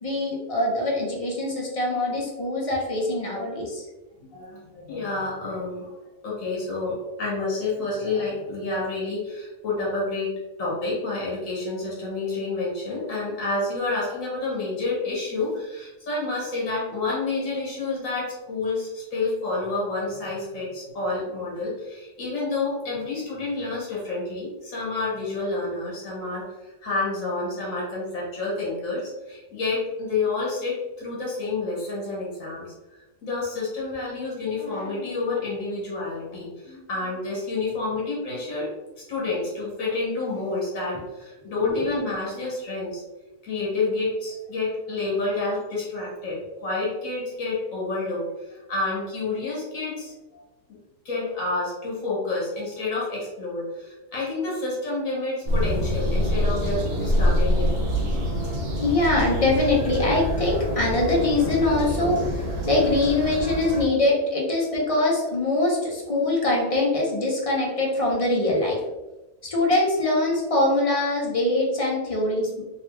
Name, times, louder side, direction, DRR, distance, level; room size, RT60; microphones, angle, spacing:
voice 1, 0.0-3.8 41.6-41.8 58.8-68.8 69.4-72.6, left 2 dB, 35° left, -3 dB, 0.7 m, -23 dB
voice 2, 4.2-5.9 6.2-10.3 10.6-32.7 33.2-38.7 39.1-43.0 43.4-50.1 50.7-50.8 51.0-57.7 63.7-63.9, left 3 dB, 80° left, -5 dB, 1.6 m, -29 dB
sound 1, 55.5-63.8, equal, 65° right, 1.1 m, -25 dB
3.0 x 2.8 x 3.1 m, 1.1 s
omnidirectional pair, 1.4 m